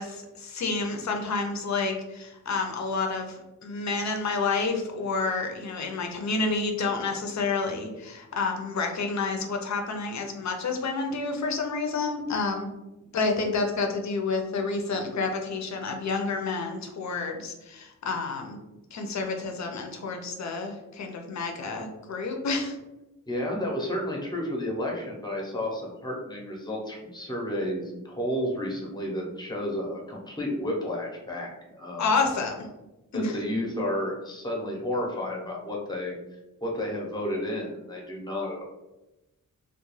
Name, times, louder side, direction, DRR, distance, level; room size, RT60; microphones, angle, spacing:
voice 1, 0.0-12.7 13.1-18.6 18.9-22.8 32.0-32.7 33.1-33.4, left 4 dB, 55° left, 3 dB, 0.5 m, -29 dB
voice 2, 23.3-32.1 33.1-38.6, left 1 dB, 15° left, -2 dB, 0.6 m, -31 dB
2.3 x 2.2 x 3.1 m, 0.99 s
wide cardioid pair, 115°, 32 cm